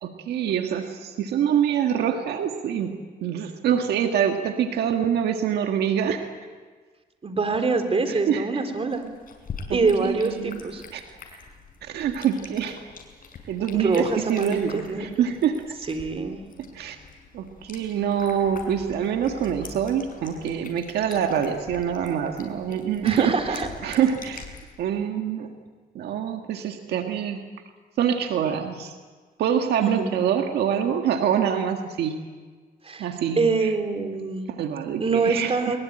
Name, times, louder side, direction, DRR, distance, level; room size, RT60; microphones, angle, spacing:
voice 1, 0.0-2.9 3.2-6.3 8.1-8.6 9.7-10.6 10.9-11.0 11.8-12.8 13.5-15.6 16.7-17.0 17.3-24.4 24.8-25.5 26.0-27.4 28.0-28.9 29.4-32.2 33.0-33.7 34.6-35.8, right 8 dB, 90° right, 5 dB, 1.7 m, -25 dB
voice 2, 7.2-9.0 9.7-10.8 13.7-15.2 15.9-16.4 23.0-23.7 29.8-30.2 32.8-33.1 33.4-34.5 35.0-35.8, right 4 dB, 35° right, 6 dB, 3.7 m, -25 dB
sound 1, 8.7-24.6, left 4 dB, 60° left, 5.7 m, -44 dB
22.5 x 22.0 x 8.9 m, 1.5 s
cardioid pair, 80°, 16 cm